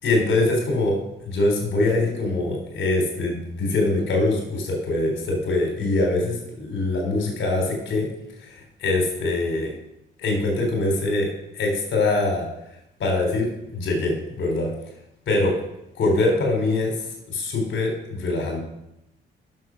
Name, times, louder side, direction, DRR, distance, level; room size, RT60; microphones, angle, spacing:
voice 1, 0.0-8.1 8.4-9.7 10.2-11.3 11.5-12.5 13.0-14.7 15.3-15.5 16.0-16.9 17.3-18.6, left 2 dB, 70° left, 1 dB, 3.6 m, -23 dB
9.5 x 6.9 x 6.2 m, 0.84 s
cardioid pair, 90°, 20 cm